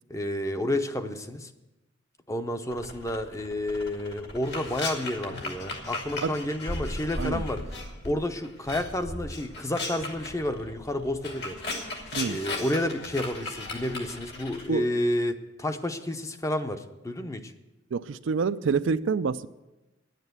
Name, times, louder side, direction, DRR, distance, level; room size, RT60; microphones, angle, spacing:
voice 1, 0.1-1.5 2.3-7.6 8.0-11.6 12.2-17.5, left 1 dB, 15° left, 8 dB, 0.7 m, -30 dB
sound 1, 2.7-8.1 8.4-14.7, left 2 dB, 60° left, 2.2 m, -36 dB
voice 2, 17.9-19.5, right 5 dB, 75° right, 13 dB, 0.4 m, -27 dB
9.9 x 9.1 x 8.0 m, 1.0 s
head